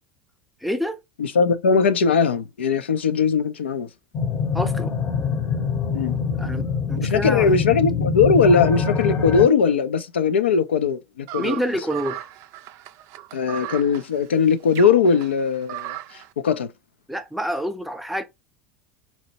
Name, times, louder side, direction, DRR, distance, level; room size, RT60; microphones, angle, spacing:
voice 1, 0.6-1.0 4.5-4.9 6.4-7.5 11.4-12.3 17.1-18.2, equal, ahead, 0.6 m, -27 dB
voice 2, 1.2-3.9 5.9-6.2 7.0-11.6 13.3-16.7, left 5 dB, 85° left, 0.4 m, -20 dB
sound 1, 4.1-9.5, left 5 dB, 35° left, 0.7 m, -24 dB
sound 2, 11.3-16.3, right 15 dB, 55° right, 0.3 m, -36 dB
4.0 x 2.1 x 2.7 m
hypercardioid pair, 80°, 6 cm